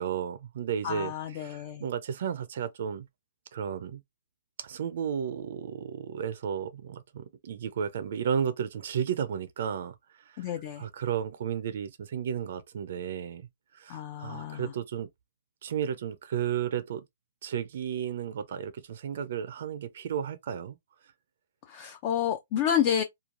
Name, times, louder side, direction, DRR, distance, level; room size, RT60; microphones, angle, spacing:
voice 1, 0.0-1.1 1.4-3.1 3.5-4.0 4.6-10.0 10.3-10.5 10.8-13.4 13.7-15.1 15.6-17.0 17.4-20.8, right 8 dB, 60° right, 0.4 m, -33 dB
voice 2, 0.8-1.9 10.4-10.8 13.9-14.7 21.6-23.0, left 9 dB, 35° left, 0.4 m, -30 dB
3.0 x 2.3 x 2.4 m
hypercardioid pair, 150°, 0 cm